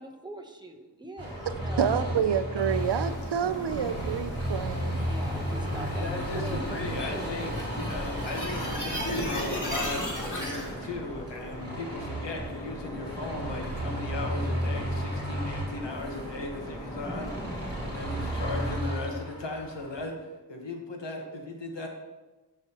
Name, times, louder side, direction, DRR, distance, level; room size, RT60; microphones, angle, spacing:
voice 1, 0.0-1.9 5.1-7.6, right 1 dB, 10° right, 3 dB, 0.9 m, -42 dB
sound 1, 1.2-20.0, equal, 35° right, 2.8 m, -35 dB
sound 2, 1.3-18.8, equal, 10° left, 1.7 m, -40 dB
voice 2, 1.5-5.1, right 8 dB, 75° right, 12 dB, 0.5 m, -28 dB
sound 3, 2.7-10.7, equal, 45° left, 2.1 m, -37 dB
voice 3, 5.9-17.3 17.8-20.1 20.5-21.9, left 2 dB, 80° left, 2 dB, 1.3 m, -37 dB
10.5 x 5.9 x 2.9 m, 1.2 s
wide cardioid pair, 55°, 42 cm